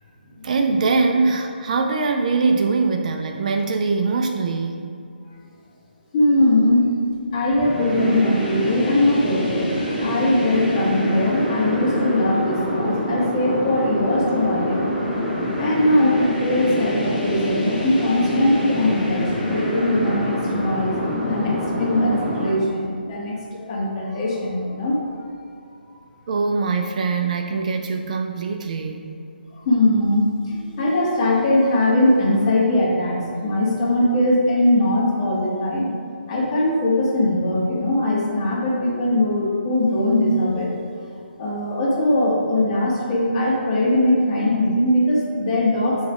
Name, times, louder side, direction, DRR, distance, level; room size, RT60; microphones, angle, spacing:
voice 1, 0.4-4.8 26.3-29.1, right 4 dB, 45° right, 4 dB, 0.4 m, -22 dB
voice 2, 6.1-6.9 7.3-14.9 15.5-25.0 25.9-26.0 29.5-35.9 36.3-40.7 41.0-41.1 41.4-46.1, left 1 dB, 35° left, -4 dB, 1.4 m, -20 dB
sound 1, 7.5-22.5, equal, 10° left, 1.5 m, -25 dB
6.9 x 3.2 x 4.9 m, 2.4 s
figure-of-eight pair, 140°, 6 cm